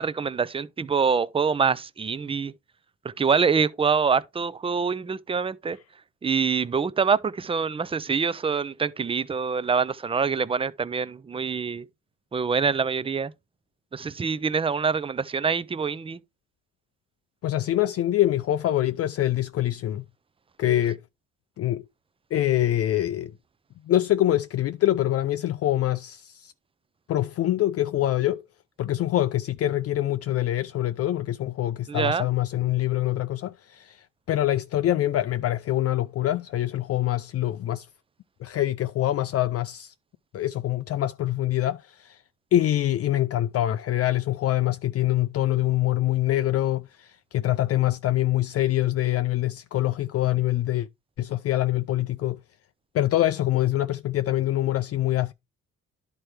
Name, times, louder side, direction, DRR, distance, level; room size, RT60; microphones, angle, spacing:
voice 1, 0.0-2.5 3.0-5.8 6.2-11.8 12.3-13.3 13.9-16.2 31.9-32.2, right 5 dB, 20° right, 0.4 m, -25 dB
voice 2, 17.4-20.0 20.6-21.0 21.6-21.8 22.3-23.3 23.9-26.5 27.1-28.4 28.8-37.9 38.4-39.9 40.3-42.2 42.5-50.9 51.2-52.4 52.9-55.3, left 13 dB, 50° left, 0.4 m, -25 dB
11.0 x 4.5 x 3.2 m
cardioid pair, 90°, 30 cm